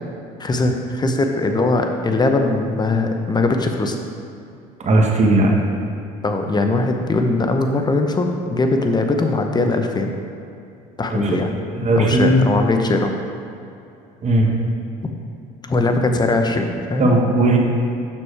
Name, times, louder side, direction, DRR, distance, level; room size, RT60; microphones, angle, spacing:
voice 1, 0.4-4.0 6.2-10.1 11.0-11.6 12.0-13.1 15.6-17.1, left 2 dB, 20° left, 5 dB, 0.8 m, -20 dB
voice 2, 4.8-5.5 11.1-11.4 11.7-12.4 14.2-14.5 17.0-17.6, right 1 dB, 40° right, 0 dB, 1.3 m, -16 dB
7.2 x 6.1 x 3.4 m, 2.6 s
supercardioid pair, 75°, 19 cm